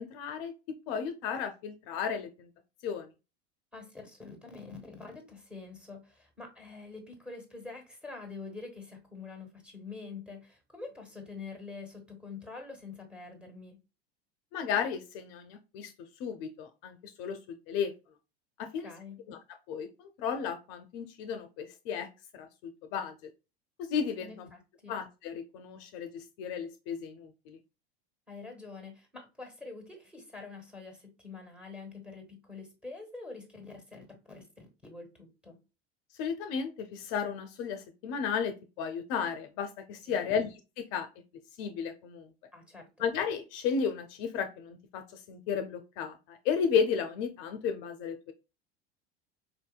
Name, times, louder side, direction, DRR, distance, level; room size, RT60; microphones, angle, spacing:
voice 1, 0.0-2.5 2.8-3.1 14.5-15.9 16.2-17.4 17.7-17.9 18.7-18.9 19.3-19.4 19.7-22.1 22.3-22.5 22.9-23.1 23.8-24.5 24.9-27.6 36.2-41.1 41.6-42.3 43.0-48.3, left 6 dB, 55° left, 0.6 m, -34 dB
voice 2, 3.7-13.8 18.6-19.2 24.2-24.9 28.3-35.6 40.1-40.4 42.5-42.9, left 4 dB, 5° right, 1.5 m, -46 dB
4.4 x 2.6 x 2.2 m
hypercardioid pair, 85°, 32 cm